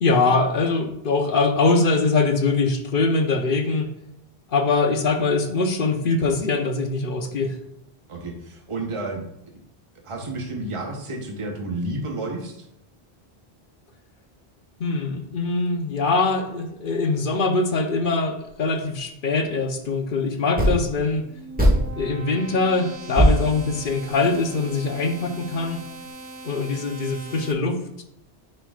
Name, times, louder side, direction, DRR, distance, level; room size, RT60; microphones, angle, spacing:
voice 1, 0.0-3.9 4.5-7.5 14.8-21.2 22.0-25.8 26.4-28.0, left 3 dB, 60° left, 4 dB, 0.9 m, -22 dB
voice 2, 8.1-9.2 10.0-12.7, right 2 dB, 30° right, 2 dB, 0.9 m, -31 dB
sound 1, 18.4-18.5 20.6-21.0 21.6-22.2 22.7-22.8 23.1-24.4, equal, 10° right, 1.6 m, -20 dB
sound 2, 21.0-27.5, right 2 dB, 75° right, 1.1 m, -40 dB
11.0 x 4.5 x 2.4 m, 0.80 s
omnidirectional pair, 1.1 m